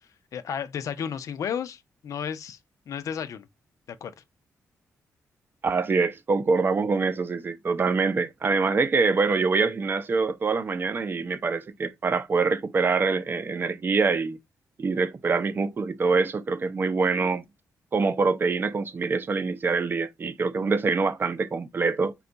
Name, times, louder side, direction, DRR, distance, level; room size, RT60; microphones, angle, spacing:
voice 1, 0.3-2.6 2.9-3.5 4.0-4.1, left 8 dB, 65° left, 0.5 m, -32 dB
voice 2, 5.6-14.4 14.8-17.4 17.9-22.1, right 4 dB, 35° right, 0.5 m, -25 dB
4.3 x 2.3 x 3.9 m
cardioid pair, 105°, 6 cm